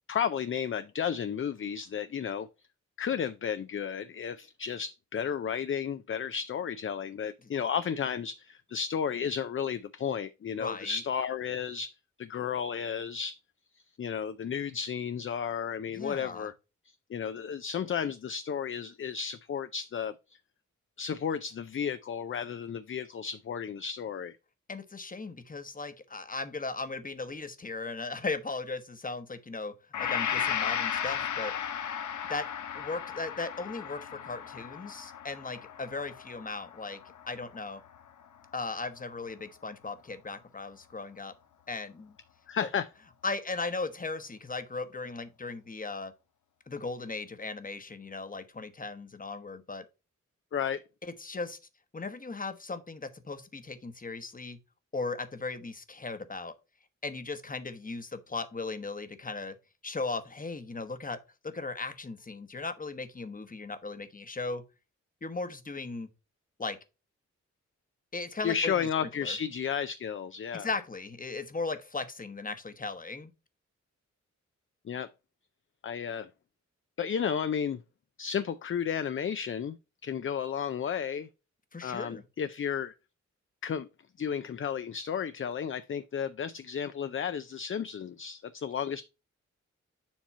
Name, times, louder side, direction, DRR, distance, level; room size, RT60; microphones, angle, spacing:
voice 1, 0.1-2.5 3.0-13.4 14.0-16.5 17.1-20.1 21.0-24.3 42.5-42.9 50.5-50.8 68.4-70.7 74.9-75.1 75.8-76.3 77.0-77.8 78.2-79.8 80.0-81.3 81.8-82.9 83.6-83.9 84.2-89.0, left 7 dB, 45° left, 0.5 m, -33 dB
voice 2, 10.6-11.0 15.9-16.5 24.7-31.8 32.3-32.5 32.7-37.0 37.3-37.8 38.5-41.3 41.7-42.2 42.6-42.7 43.2-46.1 46.7-49.8 51.0-51.6 51.9-54.6 54.9-56.5 57.0-59.6 59.8-61.2 61.4-64.6 65.2-66.1 66.6-66.8 68.1-69.4 70.5-73.3 81.7-82.2, left 3 dB, 30° left, 1.0 m, -37 dB
Gong, 29.9-38.0, left 8 dB, 75° left, 0.7 m, -35 dB
7.3 x 2.9 x 5.5 m
cardioid pair, 60°, 30 cm